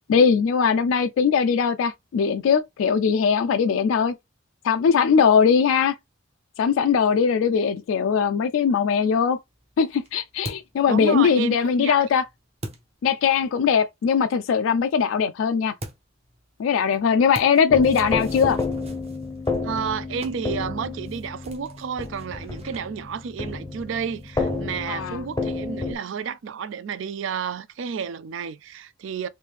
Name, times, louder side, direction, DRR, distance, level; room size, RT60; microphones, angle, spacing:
voice 1, 0.1-4.1 4.6-6.0 6.6-9.4 9.8-12.2 13.0-15.7 16.6-18.6 24.9-25.2, left 6 dB, 75° left, 0.3 m, -20 dB
sound 1, 9.3-13.7 15.8-24.6, right 1 dB, 30° right, 0.7 m, -45 dB
voice 2, 10.9-12.0 19.6-29.3, right 6 dB, 65° right, 0.3 m, -31 dB
sound 2, 17.7-25.9, left 3 dB, 15° left, 0.6 m, -30 dB
3.1 x 2.6 x 3.3 m
head